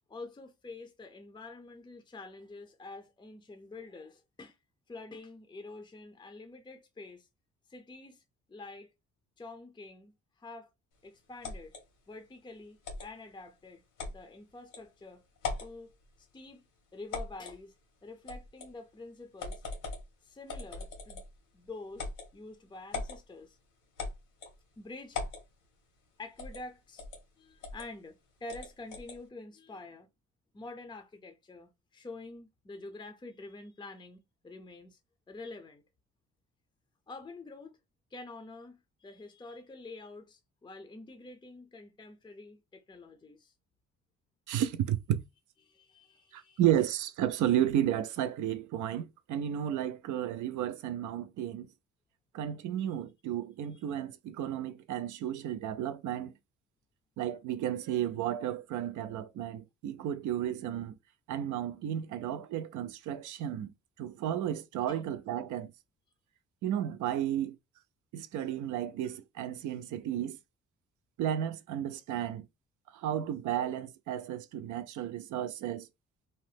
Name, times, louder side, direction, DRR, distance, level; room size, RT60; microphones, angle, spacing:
voice 1, 0.1-4.6 4.9-7.3 7.7-8.2 8.5-8.9 9.4-10.7 11.0-11.8 12.1-15.2 15.6-16.6 16.9-17.7 18.0-19.6 20.2-21.2 21.5-23.6 24.8-25.2 26.2-27.0 27.4-30.1 30.5-34.2 34.4-35.0 35.3-35.8 37.1-37.8 38.1-43.5 45.6-46.6 64.9-65.0, left 3 dB, 15° left, 0.5 m, -47 dB
sound 1, 11.4-11.8 12.8-13.1 14.0-14.2 14.7-14.8 15.4-15.7 17.1-17.6 18.3-18.7 19.4-20.1 20.5-21.4 22.0-22.3 22.9-23.2 24.0-24.6 25.1-25.4 26.4-26.6 27.0-27.2 27.6-27.9 28.5-29.2, left 4 dB, 85° left, 1.3 m, -39 dB
voice 2, 44.5-45.2 46.3-51.7 52.3-56.3 57.2-61.0 61.3-63.7 64.0-65.7 66.6-67.6 68.1-70.4 71.2-72.5 72.9-75.9, right 11 dB, 75° right, 0.5 m, -33 dB
2.8 x 2.0 x 3.2 m
cardioid pair, 90°, 30 cm